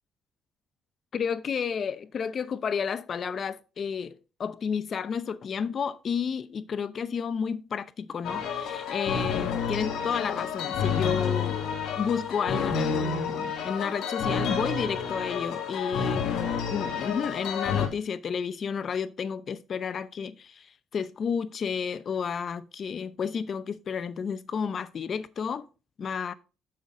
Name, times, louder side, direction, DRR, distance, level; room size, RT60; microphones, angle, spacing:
voice 1, 1.1-11.6 12.0-16.3 16.7-25.7 26.0-26.3, left 6 dB, 50° left, 0.7 m, -31 dB
sound 1, 8.2-17.9, left 6 dB, 80° left, 1.7 m, -29 dB
7.0 x 6.7 x 3.7 m
cardioid pair, 100°, 0 cm